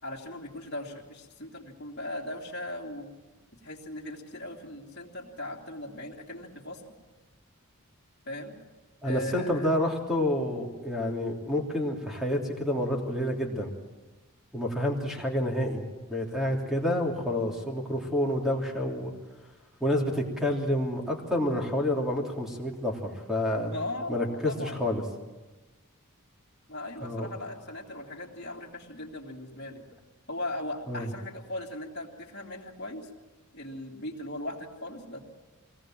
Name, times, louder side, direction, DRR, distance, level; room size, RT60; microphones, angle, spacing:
voice 1, 0.0-3.1 3.6-6.8 8.2-8.6 9.0-9.7 23.7-24.8 26.7-29.8 30.3-33.1 33.5-35.2, left 1 dB, 50° left, -3 dB, 2.9 m, -38 dB
voice 2, 9.0-13.7 14.5-15.8 16.1-19.1 19.8-23.7 24.1-25.0 27.0-27.3 30.9-31.1, left 1 dB, ahead, 0 dB, 3.1 m, -29 dB
23.5 x 18.5 x 7.6 m, 1.2 s
head